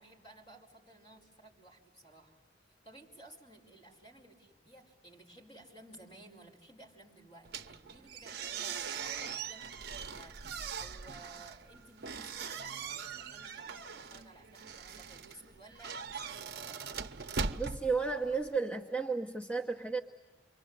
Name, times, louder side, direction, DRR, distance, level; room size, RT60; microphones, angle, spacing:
voice 1, 0.0-8.6 8.9-16.8, right 2 dB, 30° left, -1 dB, 4.7 m, -56 dB
sound 1, 7.4-18.6, right 5 dB, 55° right, 0.8 m, -41 dB
voice 2, 17.6-20.0, right 4 dB, 5° left, 3 dB, 0.9 m, -33 dB
29.0 x 24.0 x 8.0 m, 1.3 s
head